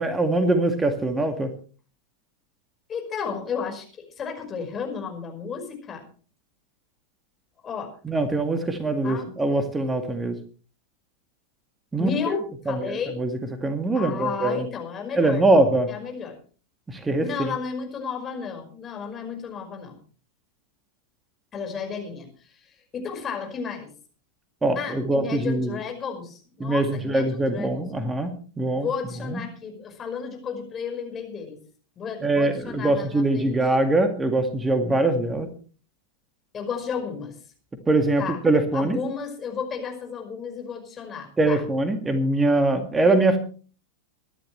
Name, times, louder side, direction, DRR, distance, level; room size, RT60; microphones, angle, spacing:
voice 1, 0.0-1.5 8.0-10.4 11.9-12.1 12.7-14.6 15.2-15.9 16.9-17.5 24.6-25.8 26.6-28.9 29.3-29.4 32.2-35.5 37.9-39.0 41.4-43.4, right 2 dB, 10° right, 7 dB, 2.1 m, -23 dB
voice 2, 2.9-6.1 7.6-7.9 9.0-9.3 12.0-13.2 13.9-15.4 15.9-16.4 17.2-20.0 21.5-23.9 24.8-27.9 28.8-31.6 32.0-33.6 36.5-37.4 38.2-38.4 38.7-41.6, left 6 dB, 25° left, 3 dB, 5.3 m, -33 dB
24.0 x 11.5 x 3.3 m, 0.40 s
figure-of-eight pair, 90°, 0 cm